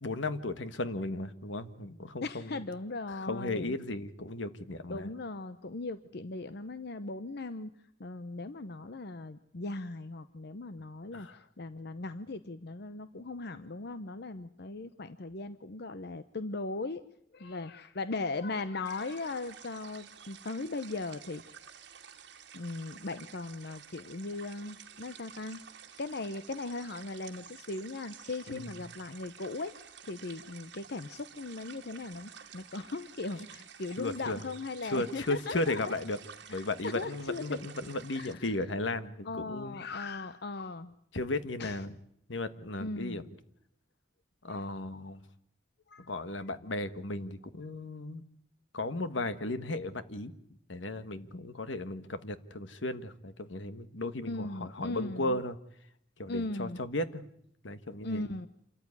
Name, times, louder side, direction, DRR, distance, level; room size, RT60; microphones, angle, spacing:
voice 1, 0.0-2.6 3.3-5.1 11.1-11.4 28.5-28.7 34.0-34.4 34.8-36.2 36.5-39.8 41.1-41.9 42.3-43.2 44.4-45.2 46.0-48.2 48.7-50.3 50.7-55.6 56.2-57.3 57.6-58.2, left 2 dB, 85° left, 12 dB, 1.5 m, -35 dB
voice 2, 2.2-3.8 4.9-7.7 8.0-17.0 17.3-21.5 22.5-25.6 26.0-29.7 30.0-35.8 36.5-37.6 38.2-38.5 39.2-40.9 41.6-41.8 42.8-43.3 44.5-44.6 45.9-46.1 54.2-55.4 56.3-56.8 58.0-58.5, left 3 dB, 60° left, 12 dB, 0.8 m, -38 dB
sound 1, 18.8-38.3, right 7 dB, 65° right, 2.4 m, -51 dB
27.0 x 14.0 x 9.7 m, 0.74 s
head